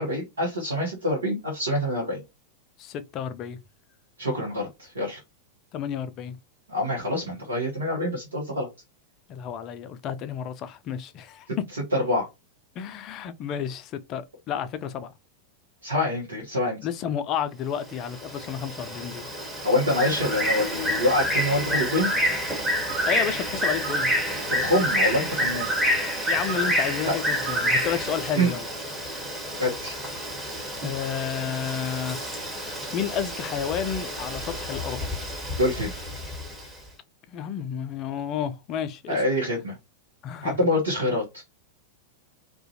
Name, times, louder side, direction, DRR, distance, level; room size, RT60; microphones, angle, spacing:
voice 1, 0.0-2.2 4.2-5.2 6.7-8.7 11.9-12.3 15.8-16.8 19.6-22.1 24.5-25.7 27.0-27.2 28.3-28.5 29.6-30.0 35.6-35.9 39.1-39.8 40.4-41.4, left 1 dB, 75° right, 0.8 m, -26 dB
voice 2, 2.8-3.6 5.7-6.4 9.3-11.6 12.8-15.1 16.8-19.3 23.1-24.1 26.3-28.7 30.8-32.2 32.5-35.1 37.3-39.2 40.2-40.6, left 8 dB, 35° left, 0.3 m, -31 dB
Bird, 17.9-36.7, equal, 10° right, 1.0 m, -28 dB
2.4 x 2.1 x 2.6 m
figure-of-eight pair, 90°, 0 cm